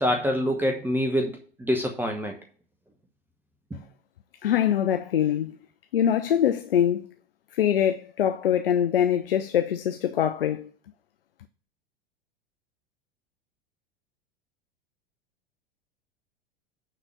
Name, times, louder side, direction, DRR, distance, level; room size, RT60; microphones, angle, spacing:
voice 1, 0.0-2.4 3.7-3.8, equal, 5° right, 1.0 m, -26 dB
voice 2, 4.4-5.6 5.9-7.1 7.5-10.7, left 10 dB, 70° left, 0.6 m, -23 dB
9.1 x 3.9 x 5.8 m
figure-of-eight pair, 85°, 29 cm